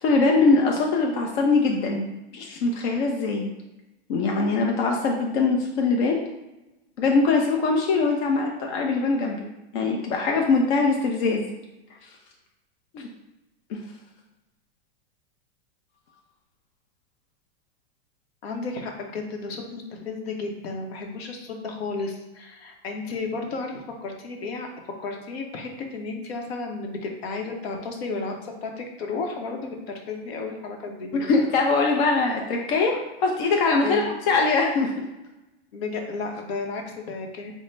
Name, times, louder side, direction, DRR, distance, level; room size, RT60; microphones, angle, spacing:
voice 1, 0.0-2.1 2.3-3.5 4.1-6.3 7.0-11.4 12.9-13.1 13.7-13.8 31.1-34.0 34.3-35.1, left 3 dB, 50° left, 0 dB, 0.6 m, -22 dB
voice 2, 18.4-24.7 25.0-31.1 33.8-34.1 35.7-37.6, left 3 dB, 75° left, 2 dB, 0.9 m, -33 dB
5.3 x 2.1 x 3.2 m, 0.97 s
supercardioid pair, 140°, 31 cm